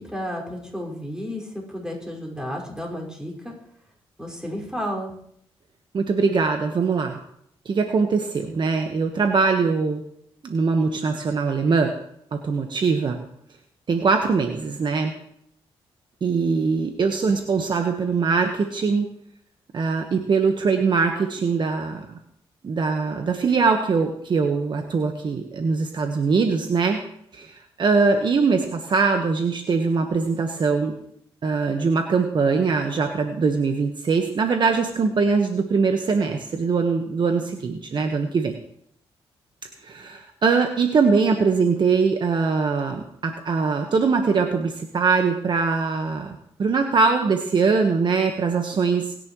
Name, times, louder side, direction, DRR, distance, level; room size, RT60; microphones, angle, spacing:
voice 1, 0.0-3.5 4.2-5.1, equal, 5° right, -2 dB, 5.4 m, -32 dB
voice 2, 5.9-7.2 7.6-10.0 10.4-11.9 12.4-13.2 13.9-15.1 16.2-19.1 19.7-22.0 22.6-27.0 27.3-31.0 31.4-38.5 39.8-49.1, right 4 dB, 50° right, 4 dB, 1.4 m, -22 dB
24.0 x 10.5 x 3.2 m, 0.71 s
cardioid pair, 85°, 10 cm